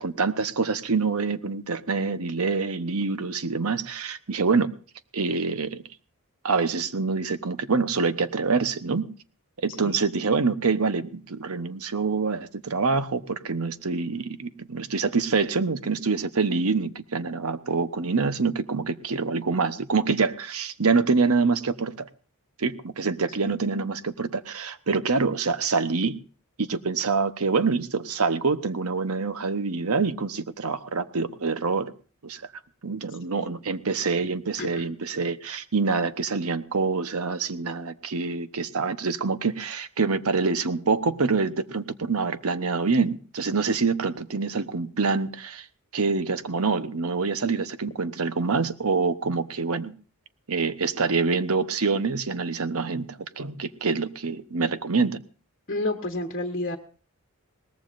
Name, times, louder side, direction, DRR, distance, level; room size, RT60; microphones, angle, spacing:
voice 1, 0.0-4.7 5.1-5.8 6.4-9.1 9.6-22.1 22.6-26.2 26.6-31.9 32.2-32.4 32.8-45.7 45.9-49.9 50.5-55.2, right 4 dB, 75° right, 11 dB, 1.0 m, -26 dB
voice 2, 55.7-56.8, left 2 dB, 45° left, 4 dB, 1.2 m, -30 dB
22.0 x 19.0 x 2.6 m, 0.39 s
head